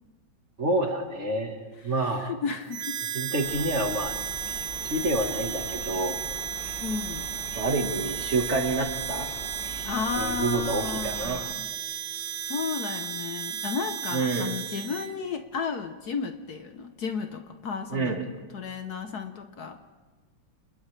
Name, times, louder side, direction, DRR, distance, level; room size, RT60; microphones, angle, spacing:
voice 1, 0.6-1.6 1.8-2.3 3.1-4.2 4.8-6.2 7.5-9.3 10.2-11.4 14.1-14.5 17.9-18.2, right 2 dB, 35° right, 3 dB, 1.8 m, -28 dB
voice 2, 2.0-3.0 6.8-7.3 9.8-11.7 12.5-18.3 18.5-19.8, left 6 dB, 60° left, 7 dB, 1.3 m, -33 dB
Harmonica, 2.7-15.1, right 8 dB, 85° right, 1.8 m, -34 dB
sound 1, 3.4-11.4, right 2 dB, 60° right, 6.1 m, -41 dB
30.0 x 28.5 x 3.3 m, 1.4 s
omnidirectional pair, 2.1 m